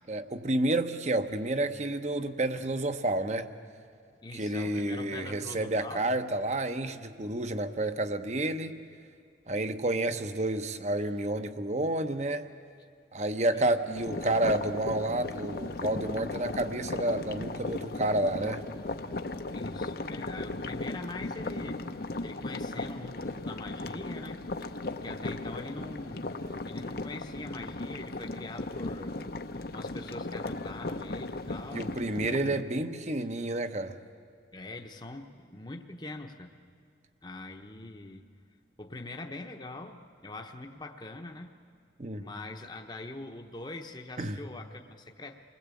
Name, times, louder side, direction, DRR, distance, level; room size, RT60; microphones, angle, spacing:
voice 1, 0.1-3.5 4.3-8.8 9.5-12.5 13.1-18.7 31.7-34.0 42.0-42.2 44.2-44.4, right 1 dB, 40° right, 0.9 m, -30 dB
voice 2, 4.2-6.1 13.5-13.8 19.5-21.8 22.2-29.2 29.7-31.9 34.5-36.5 37.2-38.3 38.8-41.5 42.2-45.4, left 2 dB, 25° left, 0.9 m, -43 dB
sound 1, 14.0-32.6, left 2 dB, 55° left, 0.8 m, -37 dB
28.0 x 20.5 x 8.4 m
head